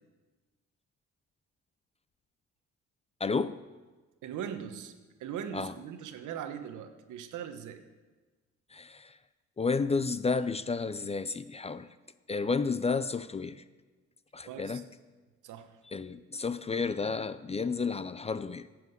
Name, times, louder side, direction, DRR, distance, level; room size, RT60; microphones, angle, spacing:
voice 1, 3.2-3.6 5.5-5.7 8.7-9.2 9.6-11.9 12.3-13.6 14.3-14.8 15.9-18.7, left 4 dB, 20° left, 14 dB, 0.4 m, -31 dB
voice 2, 4.2-4.9 5.2-7.8 14.5-14.8 15.4-15.8, right 8 dB, 80° right, 8 dB, 1.1 m, -40 dB
10.5 x 7.5 x 7.9 m, 1.3 s
cardioid pair, 90°, 30 cm